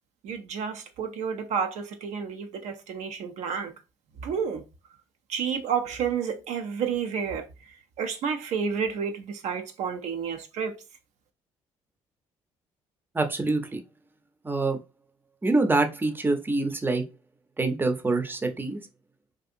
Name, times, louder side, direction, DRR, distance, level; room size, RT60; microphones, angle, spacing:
voice 1, 0.2-3.7 4.2-4.6 5.3-7.5 8.0-10.7, right 6 dB, 65° right, 0.4 m, -30 dB
voice 2, 13.1-13.8 14.4-14.8 15.4-17.0 17.6-18.8, right 3 dB, 15° right, 0.6 m, -25 dB
2.6 x 2.4 x 2.5 m
supercardioid pair, 60°, 13 cm